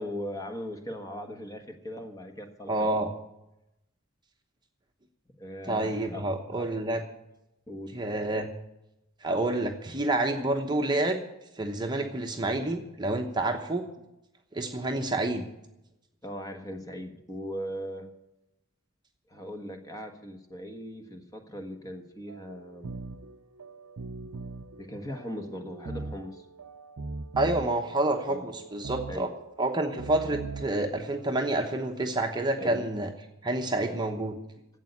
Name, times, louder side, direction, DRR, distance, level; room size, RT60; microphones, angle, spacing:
voice 1, 0.0-3.0 5.4-6.7 7.7-8.0 16.2-18.1 19.3-22.9 24.8-26.4 28.3-28.5 29.1-29.3 32.6-32.8, equal, 15° left, 6 dB, 1.3 m, -39 dB
voice 2, 2.7-3.1 5.7-7.0 7.9-8.5 9.2-11.2 11.6-13.9 14.5-15.4 27.4-29.3 29.6-33.1 33.4-34.4, right 2 dB, 20° right, 3 dB, 1.0 m, -28 dB
sound 1, 22.3-31.7, right 3 dB, 80° right, 0.7 m, -41 dB
12.0 x 8.2 x 9.7 m, 0.89 s
head